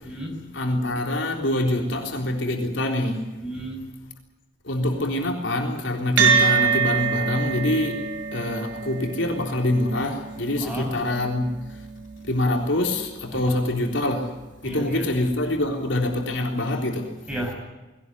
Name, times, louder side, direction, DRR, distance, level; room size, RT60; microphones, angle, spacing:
voice 1, 0.5-3.2 4.6-8.0 8.3-11.4 11.7-11.8 12.3-14.3 14.6-17.1, left 1 dB, 70° left, 2 dB, 3.7 m, -25 dB
voice 2, 3.4-3.8 10.6-10.9 13.3-13.5 14.6-15.0 17.3-17.5, right 1 dB, 5° right, 0 dB, 6.2 m, -32 dB
sound 1, 6.2-14.8, right 6 dB, 70° right, 5.0 m, -27 dB
21.5 x 18.0 x 9.7 m, 1.1 s
head